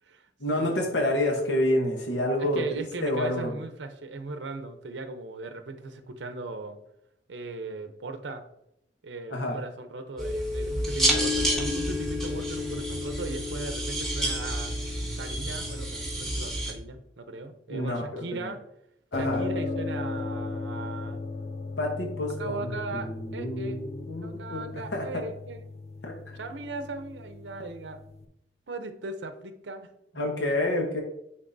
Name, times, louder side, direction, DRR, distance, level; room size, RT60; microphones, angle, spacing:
voice 1, 0.4-2.6 3.0-3.6 9.3-9.6 17.7-18.5 19.1-19.5 21.8-25.2 26.0-26.4 30.2-31.0, left 1 dB, 75° left, 1 dB, 1.0 m, -29 dB
voice 2, 2.4-6.8 7.3-8.4 9.0-14.8 15.2-18.6 19.2-21.2 22.4-23.8 24.2-25.7 26.4-28.0 28.7-29.9, right 3 dB, 75° right, 8 dB, 0.6 m, -38 dB
sound 1, 10.2-16.7, equal, ahead, 1.5 m, -29 dB
sound 2, 19.1-28.2, left 3 dB, 35° left, 0.5 m, -36 dB
9.6 x 3.9 x 2.6 m, 0.79 s
head